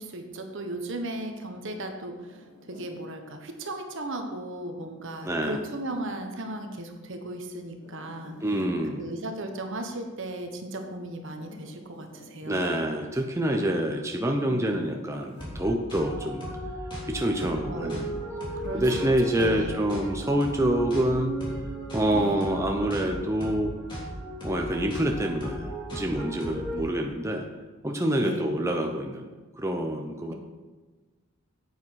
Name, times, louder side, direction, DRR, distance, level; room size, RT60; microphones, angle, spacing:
voice 1, 0.0-2.1 2.7-8.3 9.0-12.8 17.7-18.1 18.6-18.8 19.4-19.8 22.1-22.4 26.8-26.9 28.2-28.5, right 1 dB, 60° right, 5 dB, 1.3 m, -36 dB
Zipper (clothing), 2.1-3.0 4.9-6.1 7.7-8.8 11.2-12.4 14.4-15.5, equal, 55° left, 1.9 m, -51 dB
voice 2, 5.2-5.6 8.4-9.1 12.5-16.5 17.0-18.2 18.7-21.3 21.9-23.8 24.4-27.4 27.8-29.3 29.6-30.3, right 1 dB, 15° right, 2 dB, 0.7 m, -27 dB
sound 1, 15.4-26.8, right 1 dB, 20° left, 3.0 m, -35 dB
9.2 x 8.6 x 4.7 m, 1.3 s
head